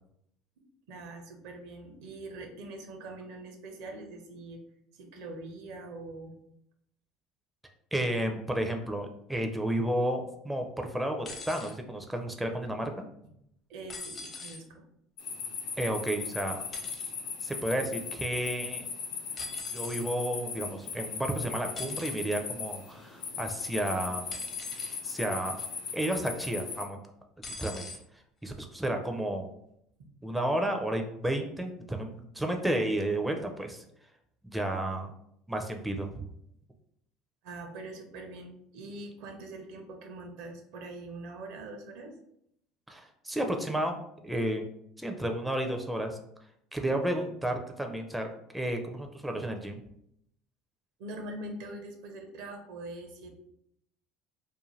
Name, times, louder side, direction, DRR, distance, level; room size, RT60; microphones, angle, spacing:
voice 1, 0.9-4.6 4.9-6.3 13.7-14.8 30.0-30.1 37.4-42.1 51.0-53.3, right 2 dB, 70° right, 4 dB, 0.6 m, -43 dB
voice 2, 7.9-12.9 15.8-16.6 17.4-18.9 19.7-24.3 25.0-25.6 25.9-27.0 27.5-27.9 28.4-29.5 30.2-33.8 34.4-35.1 35.5-36.2 42.9-44.7 45.0-46.2 46.7-48.3 48.5-49.8, right 1 dB, 5° right, 4 dB, 0.4 m, -32 dB
sound 1, 11.2-11.7 13.9-14.6 16.7-17.1 19.4-20.1 21.8-22.3 24.3-25.0 25.6-25.9 27.4-28.0 29.0-29.1, left 3 dB, 35° left, 0.7 m, -42 dB
sound 2, 15.2-26.8, left 5 dB, 65° left, 0.7 m, -38 dB
2.5 x 2.2 x 3.1 m, 0.75 s
hypercardioid pair, 80°, 0 cm